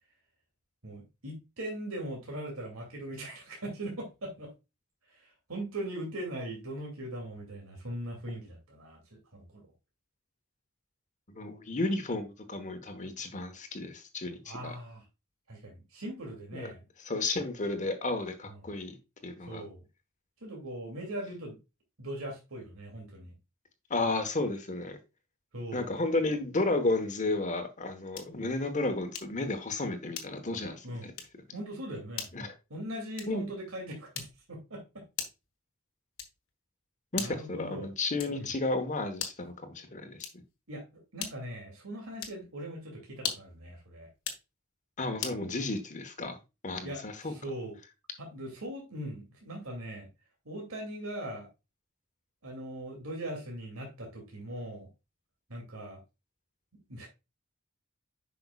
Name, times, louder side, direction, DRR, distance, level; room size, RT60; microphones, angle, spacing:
voice 1, 0.8-4.5 5.1-9.7 14.4-15.0 15.5-16.8 18.5-18.6 19.5-19.8 20.4-21.6 22.0-23.4 25.5-25.9 30.8-31.1 31.5-32.3 32.7-35.0 37.2-37.9 38.3-38.5 40.7-44.1 46.8-47.8 48.2-50.1 50.4-51.5 52.4-54.9 55.5-56.0 56.9-57.1, right 1 dB, 85° right, 0 dB, 2.6 m, -40 dB
voice 2, 11.3-14.8 16.5-16.7 17.0-19.0 19.2-19.6 23.9-25.0 25.7-31.1 32.3-32.5 33.3-33.4 37.1-40.2 45.0-46.4 46.6-47.3, left 2 dB, 35° left, 7 dB, 1.2 m, -32 dB
sound 1, 28.1-28.5 29.1-29.5 30.1-30.6 31.1-31.4 32.1-32.4 33.1-33.5 34.1-34.6 35.2-35.5 36.2-36.5 37.1-37.5 38.2-38.5 39.1-39.5 40.2-40.6 41.2-41.6 42.2-42.5 43.1-43.6 44.1-44.5 45.2-45.5, left 7 dB, 80° left, 1.5 m, -39 dB
8.1 x 5.7 x 2.3 m, 0.26 s
head